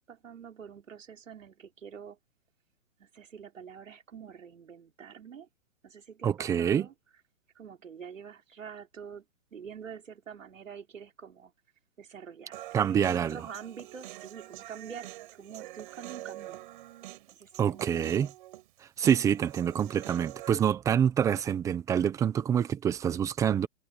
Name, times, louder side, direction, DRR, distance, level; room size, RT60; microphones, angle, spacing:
voice 1, 0.1-2.2 3.0-5.5 5.8-6.9 7.6-9.2 9.5-11.5 12.0-15.1 15.4-16.6 17.3-18.3, right 7 dB, 85° right, 3.9 m, -46 dB
voice 2, 6.2-6.9 12.7-13.5 17.6-18.3 19.0-23.7, right 8 dB, 10° right, 0.9 m, -26 dB
Human voice, 12.5-20.5, right 15 dB, 40° right, 5.9 m, -46 dB
hypercardioid pair, 155°, 38 cm